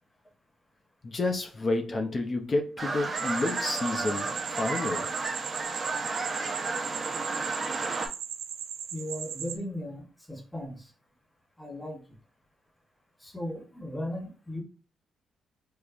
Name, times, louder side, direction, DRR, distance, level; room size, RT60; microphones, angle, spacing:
voice 1, 1.0-5.2, left 2 dB, 35° left, 0.6 m, -30 dB
sound 1, 2.8-8.1, right 3 dB, 35° right, 0.8 m, -32 dB
sound 2, 3.1-9.6, right 8 dB, 80° right, 0.4 m, -38 dB
voice 2, 8.9-10.9 11.6-12.0 13.2-14.6, left 1 dB, 10° left, 1.0 m, -37 dB
4.7 x 2.0 x 2.5 m
cardioid pair, 90°, 0 cm